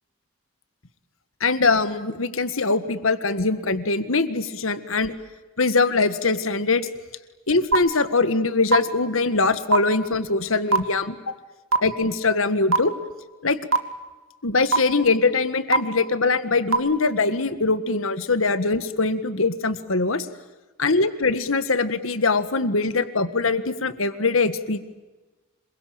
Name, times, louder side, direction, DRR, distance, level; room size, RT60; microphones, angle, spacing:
voice 1, 1.4-5.1 5.6-6.9 7.5-11.2 11.8-12.9 13.4-13.6 14.4-20.3 20.8-24.8, left 3 dB, 80° left, 12 dB, 1.7 m, -22 dB
sound 1, 7.7-7.8 8.7-8.8 9.7-9.8 10.7-10.8 11.7-11.8 12.7-12.8 13.7-13.8 14.7-14.8 15.7-15.8 16.7-16.8, right 3 dB, 80° right, 2.5 m, -16 dB
27.0 x 23.0 x 8.9 m, 1.1 s
head